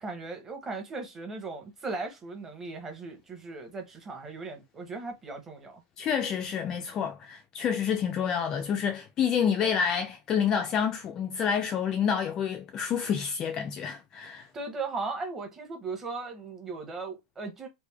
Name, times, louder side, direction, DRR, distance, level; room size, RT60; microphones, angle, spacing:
voice 1, 0.0-5.8 14.5-17.7, right 3 dB, 15° right, 0.9 m, -37 dB
voice 2, 6.0-14.5, left 7 dB, 20° left, 0.4 m, -28 dB
3.2 x 2.6 x 3.4 m
supercardioid pair, 165°, 3 cm